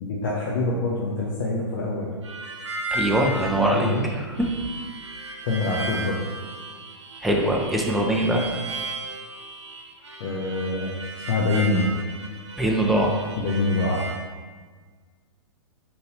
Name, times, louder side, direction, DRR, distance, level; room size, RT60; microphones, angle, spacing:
voice 1, 0.0-2.1 3.6-4.1 5.5-6.2 10.2-10.9 11.3-11.9 13.4-14.0, left 2 dB, 50° left, -4 dB, 0.7 m, -25 dB
Harmonica, 2.2-14.2, right 2 dB, 85° right, 0.8 m, -35 dB
voice 2, 2.9-4.5 7.2-8.4 12.6-13.1, right 1 dB, ahead, -1 dB, 0.3 m, -22 dB
4.1 x 3.9 x 2.8 m, 1.5 s
hypercardioid pair, 115°, 15 cm